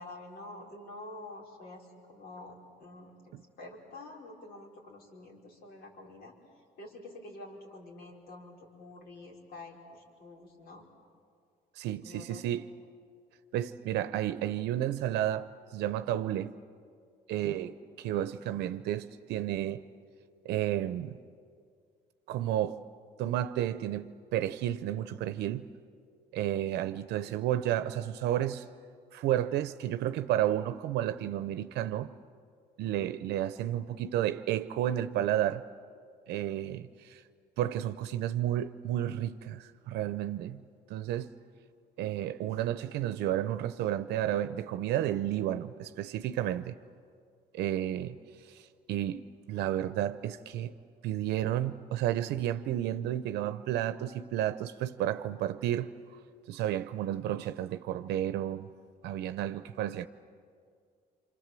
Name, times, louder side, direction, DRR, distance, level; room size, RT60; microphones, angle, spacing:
voice 1, 0.0-3.1 3.6-6.3 6.8-10.8 12.0-12.4 17.3-17.8, left 2 dB, 70° left, 5.0 m, -48 dB
voice 2, 11.8-12.7 13.5-16.5 17.3-19.8 20.4-21.2 22.3-22.8 23.2-25.7 26.3-28.6 29.1-32.1 32.8-35.6 36.3-37.2 37.6-40.6 40.9-41.3 42.0-46.8 47.5-48.2 48.5-48.6 48.9-50.7 51.0-55.9 56.5-58.7 59.0-60.1, right 12 dB, 80° right, 0.7 m, -32 dB
27.0 x 25.5 x 7.6 m
cardioid pair, 110°, 17 cm